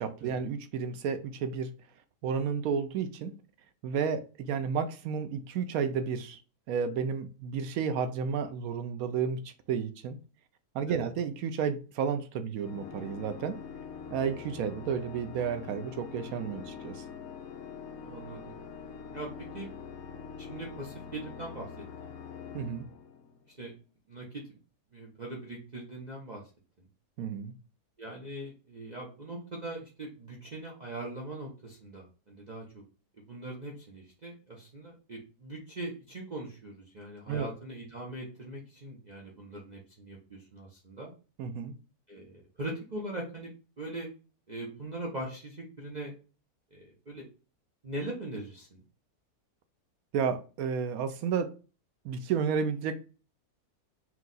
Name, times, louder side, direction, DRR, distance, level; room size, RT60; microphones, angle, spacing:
voice 1, 0.0-1.7 2.2-3.3 3.8-6.4 6.7-10.2 10.7-13.6 14.1-17.0 22.5-22.9 27.2-27.5 37.3-37.5 41.4-41.7 50.1-51.5 52.0-53.0, right 6 dB, 75° right, 1.0 m, -32 dB
Organ, 12.6-23.5, left 6 dB, 70° left, 1.0 m, -44 dB
voice 2, 18.0-18.6 19.1-19.7 20.4-22.1 23.6-23.7 24.1-24.6 24.9-26.4 28.0-32.8 33.2-41.1 42.1-43.5 43.8-44.1 44.5-46.1 46.7-47.3 47.8-48.8, right 1 dB, 35° right, 0.7 m, -41 dB
4.5 x 2.3 x 3.9 m
omnidirectional pair, 1.6 m